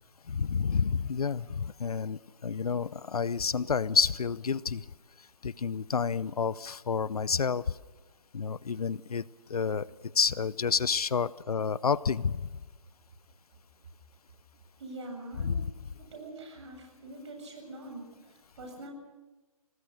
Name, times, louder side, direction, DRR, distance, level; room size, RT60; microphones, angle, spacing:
voice 1, 0.3-4.8 5.4-7.6 8.3-9.2 9.5-9.9 10.2-12.5 15.4-15.7, left 6 dB, 75° left, 20 dB, 0.7 m, -29 dB
voice 2, 14.8-15.6 16.0-18.0 18.3-18.9, right 2 dB, 50° right, 2 dB, 7.7 m, -44 dB
26.0 x 19.0 x 6.6 m, 1.2 s
figure-of-eight pair, 150°, 19 cm